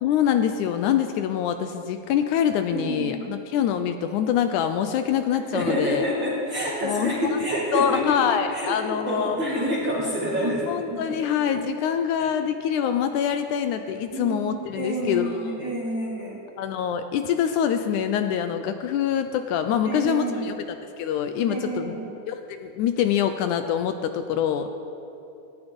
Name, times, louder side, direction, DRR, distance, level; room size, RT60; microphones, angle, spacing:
voice 1, 0.0-6.0 6.8-7.3 7.7-9.4 10.4-15.7 16.6-21.9 22.3-24.7, left 9 dB, 80° left, 8 dB, 2.1 m, -25 dB
voice 2, 2.7-3.2 5.5-8.2 8.5-10.6 10.9-11.2 12.2-12.3 14.1-16.4 19.8-20.4 21.5-22.1, equal, 40° right, -6 dB, 2.8 m, -28 dB
18.5 x 13.5 x 5.3 m, 2.8 s
omnidirectional pair, 3.6 m